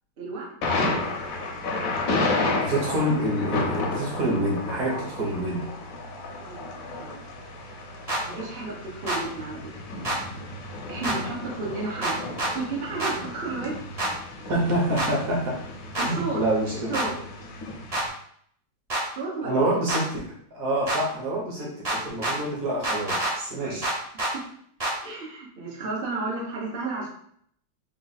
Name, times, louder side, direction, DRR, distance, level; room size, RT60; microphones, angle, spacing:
voice 1, 0.2-0.5 6.4-7.2 8.3-9.6 10.9-12.2 12.5-13.7 16.0-16.4 16.9-17.1 19.2-19.8 21.6-21.7 23.6-23.9 25.0-27.1, right 3 dB, 75° right, -3 dB, 0.5 m, -32 dB
Thunder, 0.6-18.1, left 2 dB, 70° left, 0.8 m, -32 dB
voice 2, 2.6-5.7 14.5-15.6 16.1-17.2 19.4-23.9, right 1 dB, 55° right, -2 dB, 1.1 m, -27 dB
sound 1, 8.1-8.2 9.1-9.2 10.0-10.2 11.0-11.2 12.0-12.5 13.0-13.1 14.0-14.1 15.0-15.1 15.9-16.1 16.9-17.1 17.9-18.1 18.9-19.0 19.9-20.0 20.9-21.0 21.8-22.4 22.8-23.3 23.8-24.3 24.8-24.9, right 1 dB, 30° right, 0.7 m, -26 dB
3.8 x 2.4 x 4.0 m, 0.66 s
omnidirectional pair, 2.3 m